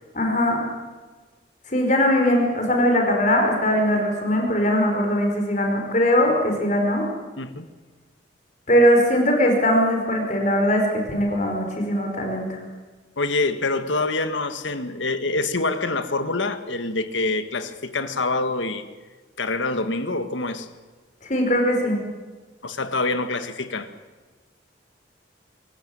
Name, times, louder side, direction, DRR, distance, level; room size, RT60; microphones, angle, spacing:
voice 1, 0.1-0.6 1.7-7.0 8.7-12.6 21.3-22.0, equal, 40° left, 2 dB, 5.0 m, -20 dB
voice 2, 13.2-18.8 19.4-20.7 22.6-23.9, left 3 dB, 90° left, 9 dB, 1.8 m, -26 dB
25.0 x 15.0 x 8.9 m, 1.3 s
head